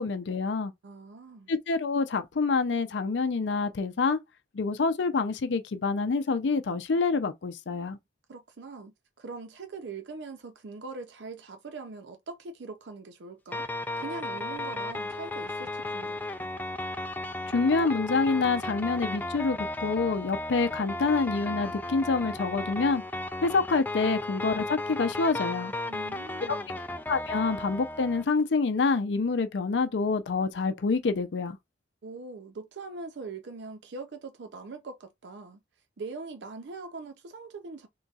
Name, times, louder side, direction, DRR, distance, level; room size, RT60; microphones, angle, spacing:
voice 1, 0.0-0.7 1.5-4.2 4.5-8.0 17.5-23.0 23.4-25.7 26.5-26.6 27.1-31.6, left 4 dB, 90° left, 0.5 m, -27 dB
voice 2, 0.8-1.5 8.3-13.6 14.0-16.3 25.9-26.8 32.0-35.6 36.0-37.9, right 3 dB, 80° right, 0.5 m, -42 dB
sound 1, 13.5-28.2, left 2 dB, 10° left, 0.3 m, -35 dB
3.9 x 3.8 x 2.3 m
head